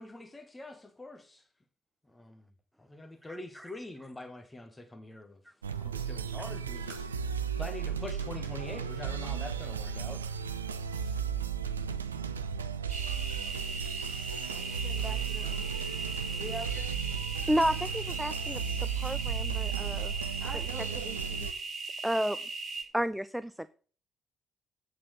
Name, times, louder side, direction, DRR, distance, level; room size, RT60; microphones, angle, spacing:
voice 1, 0.0-1.5 2.1-2.4 2.8-5.4 5.8-7.0 7.5-10.2 10.8-11.2, left 2 dB, 15° left, 1.1 m, -44 dB
voice 2, 3.3-3.7 16.7-16.8 17.5-20.1 20.5-21.5 22.0-22.4 22.9-23.7, equal, 5° right, 0.4 m, -32 dB
sound 1, 5.6-21.5, right 7 dB, 80° right, 0.3 m, -35 dB
sound 2, 12.9-22.8, right 3 dB, 45° right, 2.4 m, -38 dB
voice 3, 14.5-15.8 16.3-17.0 20.4-21.1, right 1 dB, 30° right, 3.7 m, -44 dB
8.6 x 4.2 x 6.7 m
figure-of-eight pair, 40°, 0 cm